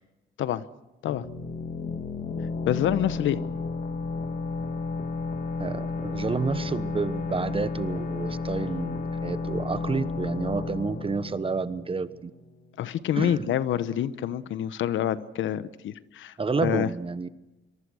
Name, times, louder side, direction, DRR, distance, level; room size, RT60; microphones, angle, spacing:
sound 1, 1.1-12.6, left 4 dB, 45° left, 2.3 m, -32 dB
voice 1, 2.7-3.4 12.8-16.9, left 11 dB, 75° left, 15 dB, 1.1 m, -27 dB
voice 2, 5.6-12.3 13.2-13.5 16.4-17.3, right 4 dB, 25° right, 14 dB, 1.2 m, -30 dB
25.5 x 23.0 x 6.4 m, 1.0 s
cardioid pair, 90°, 20 cm